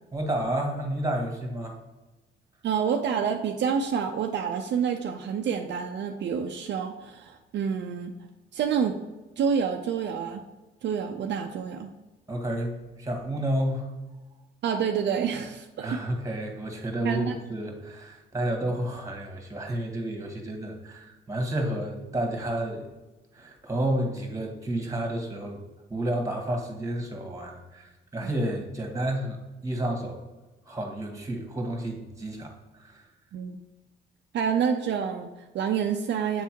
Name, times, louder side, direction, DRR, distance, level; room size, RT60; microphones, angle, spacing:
voice 1, 0.1-1.8 12.3-13.9 15.8-22.9 23.3-25.6 25.9-30.2 30.6-33.0, right 1 dB, 15° right, 2 dB, 1.7 m, -31 dB
voice 2, 2.6-8.1 8.5-9.0 9.4-10.4 10.8-11.9 14.6-16.0 17.0-17.4 33.3-33.6 34.3-36.4, right 7 dB, 60° right, 4 dB, 0.6 m, -28 dB
7.9 x 3.4 x 4.6 m, 1.1 s
cardioid pair, 90°, 20 cm